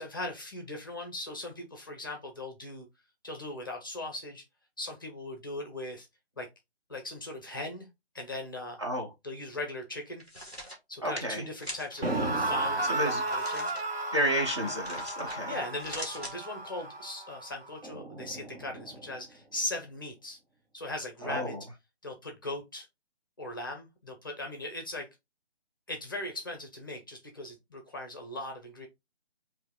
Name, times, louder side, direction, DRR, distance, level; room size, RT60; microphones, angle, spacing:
voice 1, 0.0-2.9 3.2-4.4 4.8-6.1 6.4-6.5 6.9-7.9 8.1-8.8 9.2-10.2 10.9-13.7 14.6-14.7 15.5-20.4 20.7-21.6 22.0-22.9 23.4-25.1 25.9-28.9, left 2 dB, 20° left, 0.7 m, -39 dB
sound 1, 10.2-10.8 11.6-12.0 13.2-13.8 14.8-15.4 15.7-16.3, equal, 10° right, 1.0 m, -42 dB
voice 2, 11.0-11.4 12.9-13.2 14.1-15.5 21.3-21.5, equal, 25° right, 0.6 m, -30 dB
sound 2, 12.0-19.1, right 2 dB, 60° right, 1.4 m, -34 dB
4.6 x 2.7 x 3.6 m
figure-of-eight pair, 150°, 33 cm